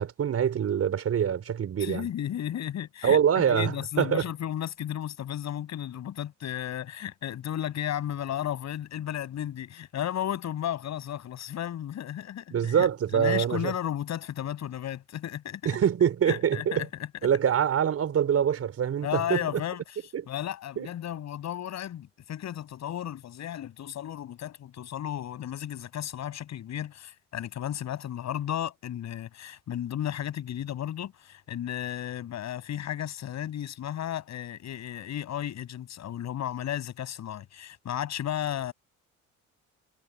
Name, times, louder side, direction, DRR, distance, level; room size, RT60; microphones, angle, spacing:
voice 1, 0.0-2.1 3.0-4.2 12.5-13.7 15.6-16.8 17.2-19.4 20.8-20.9, right 8 dB, 50° right, 4.9 m, -25 dB
voice 2, 1.8-3.2 3.5-15.7 16.3-16.9 19.0-20.0 20.3-38.7, left 11 dB, 60° left, 6.7 m, -34 dB
cardioid pair, 95°, 31 cm